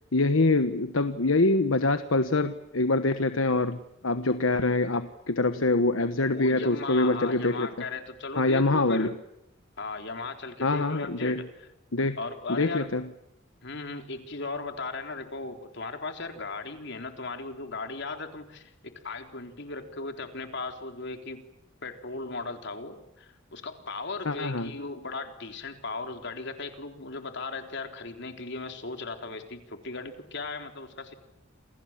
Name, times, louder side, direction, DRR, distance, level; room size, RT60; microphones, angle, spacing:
voice 1, 0.1-7.7 8.4-9.1 10.6-11.4 11.9-12.2 12.5-13.0 24.2-24.7, left 2 dB, 80° left, 10 dB, 1.2 m, -25 dB
voice 2, 6.3-9.2 9.8-11.7 12.2-12.9 13.6-21.4 21.8-31.1, left 3 dB, 60° left, 6 dB, 3.8 m, -37 dB
29.0 x 27.5 x 7.4 m, 0.82 s
head